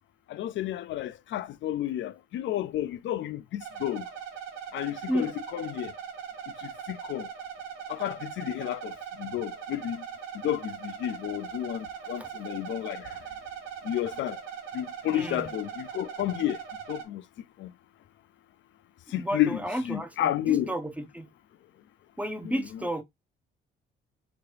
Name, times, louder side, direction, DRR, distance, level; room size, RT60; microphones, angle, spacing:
voice 1, 0.3-4.1 4.7-5.9 6.6-7.3 7.9-10.1 10.4-13.2 13.8-14.4 14.7-16.6 16.9-17.2 17.6-17.7 19.1-20.7 22.4-22.6, left 12 dB, 70° left, 0.4 m, -31 dB
sound 1, 3.6-17.0, right 8 dB, 75° right, 1.0 m, -40 dB
voice 2, 15.1-15.5 19.2-21.3 22.2-23.0, equal, 5° right, 0.6 m, -32 dB
3.4 x 3.0 x 3.2 m
cardioid pair, 90°, 20 cm